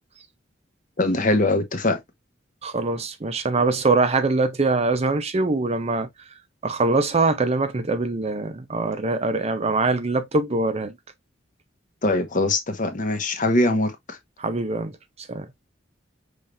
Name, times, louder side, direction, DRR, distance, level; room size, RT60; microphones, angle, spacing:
voice 1, 1.0-2.0 12.0-14.2, left 2 dB, 45° left, 0.9 m, -22 dB
voice 2, 2.6-6.1 6.6-10.9 14.4-14.9 15.3-15.5, right 3 dB, 35° right, 0.6 m, -23 dB
5.6 x 3.3 x 2.5 m
head